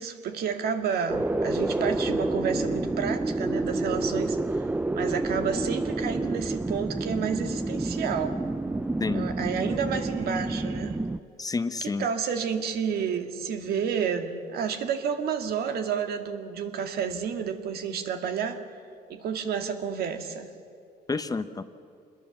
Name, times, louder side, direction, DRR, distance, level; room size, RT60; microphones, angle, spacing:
voice 1, 0.0-4.7 4.9-8.4 9.1-11.0 11.8-18.6 19.1-20.5, right 7 dB, 65° right, 6 dB, 2.0 m, -30 dB
sound 1, 1.1-11.2, right 2 dB, 10° right, 0.5 m, -29 dB
voice 2, 11.4-12.1 21.1-21.6, left 4 dB, 20° left, 10 dB, 0.9 m, -29 dB
26.0 x 21.0 x 7.2 m, 2.5 s
cardioid pair, 110°, 17 cm